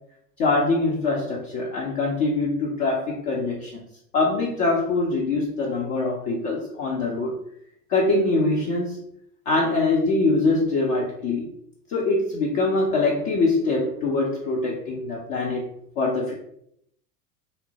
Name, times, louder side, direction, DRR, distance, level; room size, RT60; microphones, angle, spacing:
voice 1, 0.4-3.7 4.1-7.4 7.9-9.0 9.5-11.5 11.9-15.7 16.0-16.3, left 3 dB, 25° left, -3 dB, 0.3 m, -23 dB
3.6 x 2.0 x 2.7 m, 0.71 s
figure-of-eight pair, 80°, 46 cm